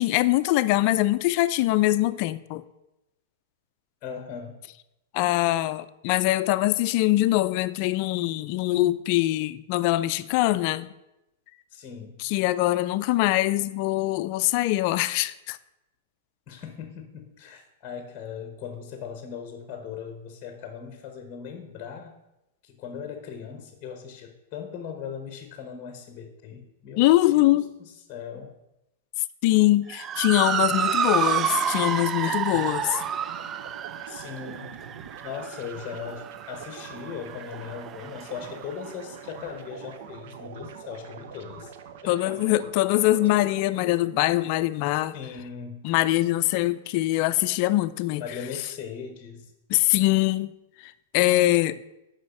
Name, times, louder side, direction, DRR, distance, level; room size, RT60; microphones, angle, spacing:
voice 1, 0.0-2.6 5.1-10.9 12.2-15.6 27.0-27.6 29.4-33.0 42.1-45.1 45.8-48.2 49.7-50.5 50.8-51.8, left 17 dB, 50° left, 0.4 m, -23 dB
voice 2, 4.0-4.6 11.7-12.2 16.5-22.1 22.6-28.5 34.1-34.8 35.2-41.7 42.0-42.6 45.1-45.8 48.2-49.5, left 7 dB, 35° left, 1.1 m, -39 dB
Motor vehicle (road) / Siren, 29.9-38.5, right 8 dB, 25° right, 0.3 m, -29 dB
sound 1, 32.5-43.6, right 8 dB, 60° right, 0.8 m, -43 dB
6.4 x 5.6 x 7.0 m
hypercardioid pair, 130°, 0 cm